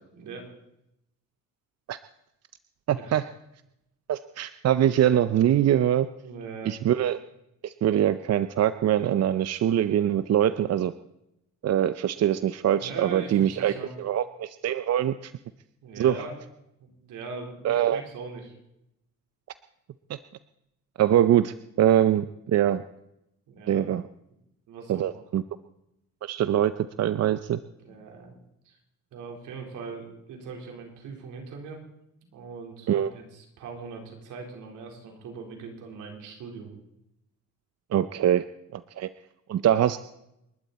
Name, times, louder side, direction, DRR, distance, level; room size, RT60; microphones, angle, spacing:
voice 1, 0.1-0.5 2.9-3.3 6.2-6.7 12.8-13.9 15.8-16.4 16.8-18.5 23.5-23.9 24.7-25.1 27.8-28.3 28.6-28.8 29.1-31.8 32.3-36.7, right 4 dB, 85° right, 1 dB, 4.1 m, -41 dB
voice 2, 2.9-3.2 4.1-6.1 6.7-7.2 7.6-10.9 11.6-13.7 14.0-15.3 16.0-16.1 17.6-18.0 20.1-20.2 21.0-22.8 23.7-24.0 24.9-25.4 26.2-26.7 27.0-27.6 32.9-33.1 37.9-38.4 38.7-39.1 39.5-40.0, right 11 dB, 55° right, 13 dB, 0.7 m, -23 dB
29.0 x 12.0 x 4.2 m, 0.84 s
cardioid pair, 90°, 30 cm